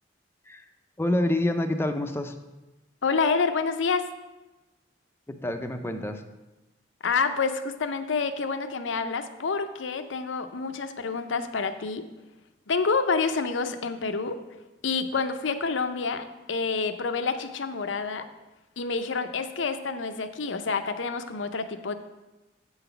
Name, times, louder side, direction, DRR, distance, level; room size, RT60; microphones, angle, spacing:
voice 1, 1.0-2.3 5.3-6.2, left 1 dB, 15° left, 7 dB, 0.5 m, -27 dB
voice 2, 3.0-4.1 7.0-12.0 12.7-14.4 14.8-18.3 18.8-21.9, left 4 dB, 85° left, 9 dB, 0.6 m, -28 dB
8.3 x 4.0 x 6.8 m, 1.1 s
head